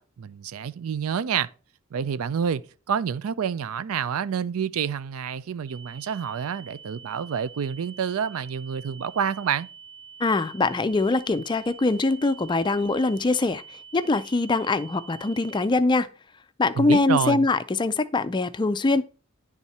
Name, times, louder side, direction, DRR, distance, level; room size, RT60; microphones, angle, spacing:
voice 1, 0.0-1.5 1.9-9.7 16.8-17.5, right 7 dB, 85° right, 0.4 m, -28 dB
sound 1, 5.7-15.7, right 6 dB, 20° right, 0.8 m, -46 dB
voice 2, 10.2-16.1 16.6-19.0, left 3 dB, 20° left, 0.4 m, -23 dB
10.5 x 3.6 x 4.1 m
head